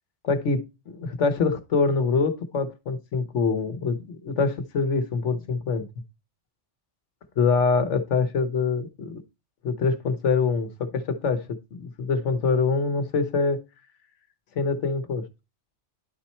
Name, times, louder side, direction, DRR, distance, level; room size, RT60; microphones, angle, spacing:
voice 1, 0.2-5.9 7.4-9.2 9.6-13.6 14.5-15.2, left 4 dB, 90° left, 1.3 m, -25 dB
10.5 x 4.2 x 4.3 m
omnidirectional pair, 1.2 m